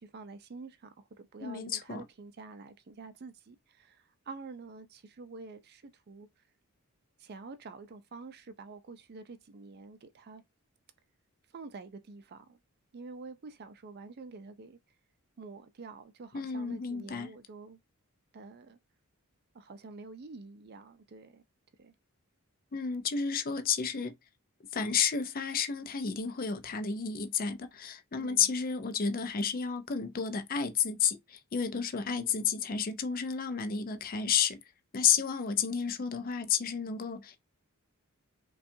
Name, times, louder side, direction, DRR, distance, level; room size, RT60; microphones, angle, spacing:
voice 1, 0.0-6.3 7.2-10.4 11.5-12.6 12.9-14.8 15.4-17.8 18.3-18.8 19.5-21.4 21.8-21.9 28.2-28.5 32.0-32.6, right 4 dB, 45° right, 0.4 m, -48 dB
voice 2, 1.4-2.0 16.3-17.3 22.7-24.1 24.7-34.6 34.9-37.4, left 7 dB, 40° left, 0.5 m, -31 dB
5.3 x 2.3 x 2.6 m
head